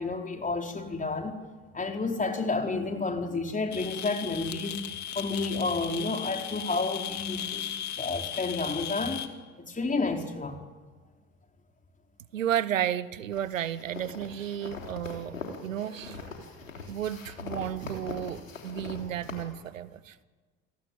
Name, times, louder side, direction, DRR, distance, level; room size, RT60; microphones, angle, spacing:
voice 1, 0.0-1.3 1.7-4.8 5.1-7.7 8.0-9.3 9.6-10.6, left 3 dB, 20° left, 4.5 m, -30 dB
sound 1, 3.7-9.3, left 10 dB, 45° left, 2.6 m, -36 dB
voice 2, 12.3-15.4 15.6-16.3 16.9-20.2, right 10 dB, 85° right, 0.9 m, -32 dB
sound 2, 13.3-19.4, left 4 dB, 90° left, 3.4 m, -41 dB
28.5 x 18.0 x 9.6 m
figure-of-eight pair, 60°, 38 cm